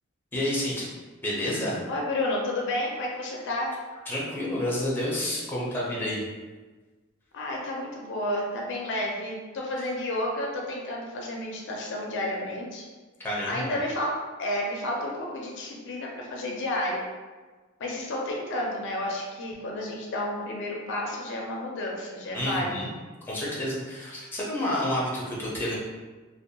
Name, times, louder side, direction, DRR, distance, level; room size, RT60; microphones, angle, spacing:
voice 1, 0.3-0.9 1.2-1.8 4.1-6.2 9.8-9.9 13.2-13.8 22.3-22.9 23.3-25.8, left 1 dB, 10° left, -6 dB, 0.5 m, -29 dB
voice 2, 1.9-3.7 7.3-12.8 13.4-14.1 14.4-17.0 17.8-22.8, left 1 dB, 60° left, -1 dB, 0.4 m, -31 dB
2.6 x 2.1 x 2.7 m, 1.3 s
head